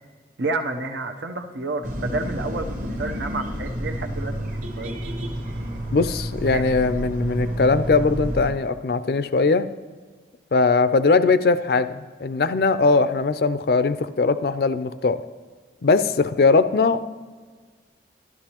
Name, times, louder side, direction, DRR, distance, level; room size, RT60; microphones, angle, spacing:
voice 1, 0.4-5.0 6.5-6.6, right 3 dB, 90° right, 6 dB, 0.7 m, -30 dB
sound 1, 1.8-8.5, equal, 45° right, 1.0 m, -29 dB
voice 2, 5.9-9.7 10.5-15.2 15.8-17.1, left 4 dB, 60° left, 13 dB, 0.4 m, -20 dB
12.0 x 12.0 x 2.9 m, 1.5 s
head